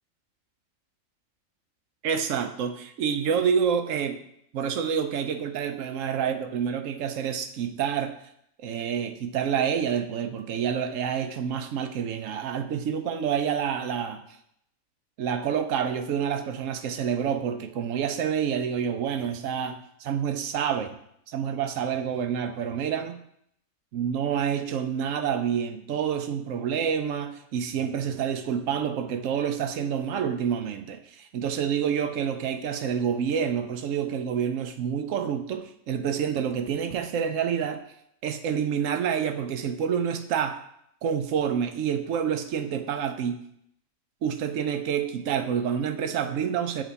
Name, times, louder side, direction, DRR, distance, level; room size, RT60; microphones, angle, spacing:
voice 1, 2.0-4.2 4.5-8.2 8.6-14.2 15.2-21.0 21.3-23.2 23.9-37.8 38.2-40.6 41.0-43.4 44.2-46.8, right 8 dB, 75° right, 7 dB, 1.0 m, -28 dB
7.5 x 3.4 x 4.0 m, 0.72 s
omnidirectional pair, 1.4 m